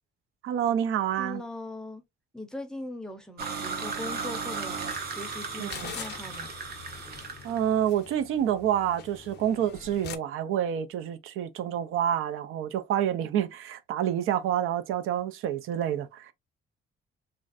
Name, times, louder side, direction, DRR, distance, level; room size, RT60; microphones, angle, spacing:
voice 1, 0.4-1.4 5.6-5.9 7.4-16.3, right 10 dB, 90° right, 0.5 m, -28 dB
voice 2, 1.2-2.0 2.3-4.8 5.1-6.5, left 1 dB, 5° left, 0.5 m, -40 dB
sound 1, 3.4-7.6, right 5 dB, 50° right, 0.8 m, -35 dB
sound 2, 4.7-10.2, left 9 dB, 55° left, 0.5 m, -45 dB
3.2 x 2.5 x 2.4 m
cardioid pair, 145°, 21 cm